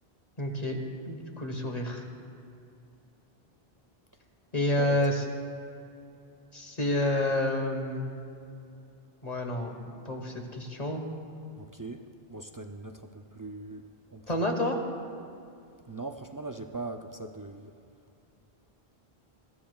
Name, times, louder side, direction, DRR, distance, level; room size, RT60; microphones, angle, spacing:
voice 1, 0.4-0.8 1.0-2.0 4.5-5.2 6.5-8.1 9.2-9.8 10.0-11.0 14.3-14.8, left 1 dB, 40° left, 2 dB, 1.5 m, -29 dB
voice 2, 11.6-12.0 12.3-13.0 13.3-13.8 14.1-14.4 15.9-17.7, right 2 dB, 35° right, 4 dB, 0.3 m, -39 dB
21.5 x 13.5 x 2.4 m, 2.6 s
omnidirectional pair, 1.0 m